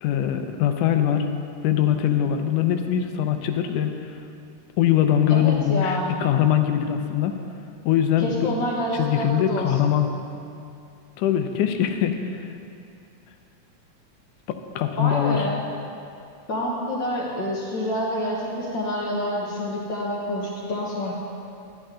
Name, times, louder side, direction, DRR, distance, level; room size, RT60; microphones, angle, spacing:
voice 1, 0.0-1.3 1.6-4.0 4.8-7.4 7.9-8.5 9.0-10.1 11.2-12.5 14.5-15.5, left 10 dB, 90° left, 6 dB, 2.2 m, -22 dB
voice 2, 5.3-6.2 8.2-9.9 15.0-15.6 16.5-21.1, left 1 dB, 60° left, -4 dB, 1.2 m, -28 dB
11.5 x 11.0 x 3.7 m, 2.6 s
omnidirectional pair, 3.5 m